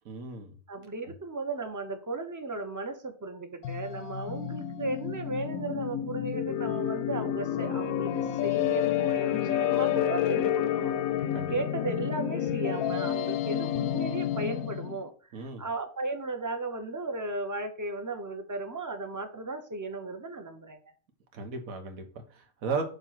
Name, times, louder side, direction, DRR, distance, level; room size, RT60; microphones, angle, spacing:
voice 1, 0.0-0.5 1.1-1.2 11.3-11.5 15.3-15.6 21.3-22.8, right 4 dB, 80° right, 5 dB, 1.5 m, -35 dB
voice 2, 0.7-20.8, right 2 dB, 20° right, 7 dB, 0.6 m, -36 dB
sound 1, 3.6-15.0, left 11 dB, 90° left, 1.0 m, -29 dB
6.8 x 3.2 x 5.6 m, 0.40 s
omnidirectional pair, 1.5 m